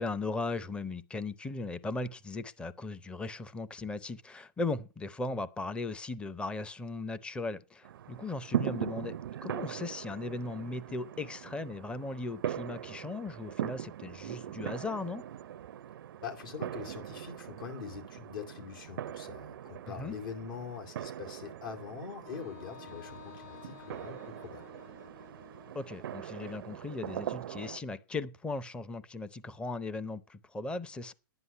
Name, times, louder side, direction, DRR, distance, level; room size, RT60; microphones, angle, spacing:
voice 1, 0.0-9.2 9.4-15.2 19.9-20.2 25.7-31.1, left 3 dB, 10° left, 0.6 m, -37 dB
sound 1, 7.8-27.8, right 11 dB, 70° right, 0.5 m, -41 dB
voice 2, 16.2-24.7, left 6 dB, 65° left, 2.6 m, -43 dB
Wind instrument woodwind instrument, 22.2-26.3, left 10 dB, 50° left, 0.8 m, -53 dB
11.0 x 9.8 x 5.5 m
hypercardioid pair, 130°, 12 cm